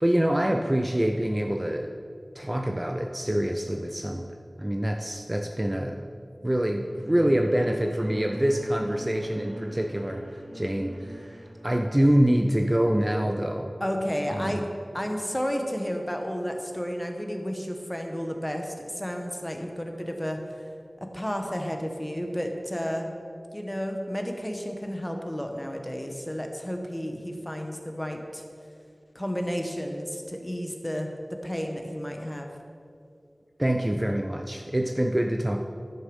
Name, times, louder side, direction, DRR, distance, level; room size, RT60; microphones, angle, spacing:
voice 1, 0.0-1.9 2.3-6.1 6.4-13.8 14.3-14.7 33.6-35.6, right 1 dB, 20° right, 3 dB, 0.5 m, -26 dB
sound 1, 6.7-13.3, right 1 dB, 60° right, 2.1 m, -41 dB
voice 2, 13.8-14.6 14.9-20.4 21.0-23.1 23.5-28.4 29.1-32.5, equal, 15° left, 3 dB, 1.2 m, -32 dB
11.0 x 6.5 x 5.4 m, 2.4 s
wide cardioid pair, 50°, 0 cm